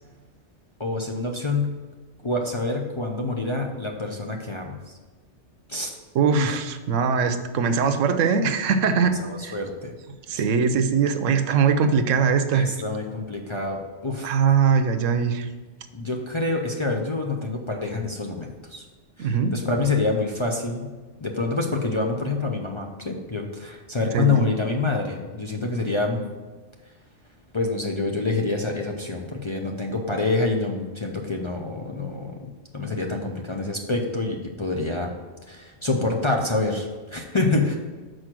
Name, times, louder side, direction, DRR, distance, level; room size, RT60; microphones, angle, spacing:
voice 1, 0.8-1.7 2.2-5.0 5.7-6.0 6.3-6.5 9.2-9.9 10.3-10.4 12.5-14.4 15.9-18.9 19.2-20.9 21.2-26.2 27.5-32.5 32.7-35.1 35.5-37.8, left 3 dB, 30° left, 1 dB, 0.6 m, -27 dB
voice 2, 6.1-9.5 10.3-12.6 14.2-15.5 19.2-19.5 24.1-24.4, right 6 dB, 85° right, 9 dB, 1.0 m, -21 dB
6.3 x 4.7 x 6.0 m, 1.3 s
omnidirectional pair, 1.3 m